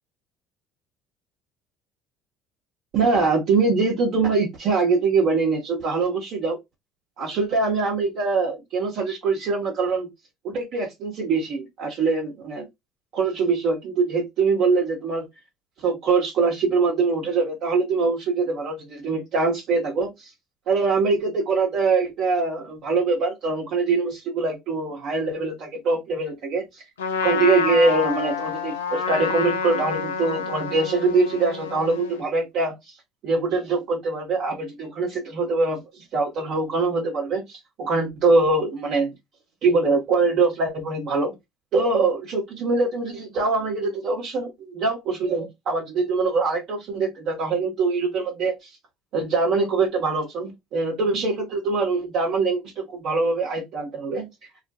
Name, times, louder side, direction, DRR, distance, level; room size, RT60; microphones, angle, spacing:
voice 1, 2.9-6.6 7.2-10.1 10.4-12.7 13.1-15.3 15.8-20.3 20.7-26.8 27.2-32.9 33.2-35.8 36.1-39.1 39.6-41.3 41.7-48.8 49.1-54.3, right 3 dB, 55° right, 0.8 m, -23 dB
Trumpet, 27.0-32.2, left 6 dB, 85° left, 0.5 m, -28 dB
2.4 x 2.1 x 2.7 m
hypercardioid pair, 60°, 0 cm